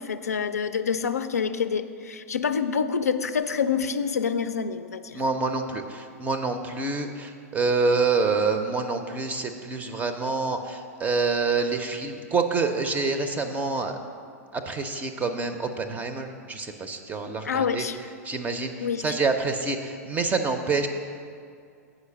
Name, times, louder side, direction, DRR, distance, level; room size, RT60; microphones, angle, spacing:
voice 1, 0.0-5.2 17.4-18.0 18.8-19.1, left 6 dB, 75° left, 11 dB, 0.4 m, -27 dB
voice 2, 5.1-14.0 14.5-17.9 18.2-20.9, right 4 dB, 15° right, 7 dB, 0.5 m, -27 dB
8.1 x 5.0 x 6.5 m, 2.3 s
figure-of-eight pair, 100°, 9 cm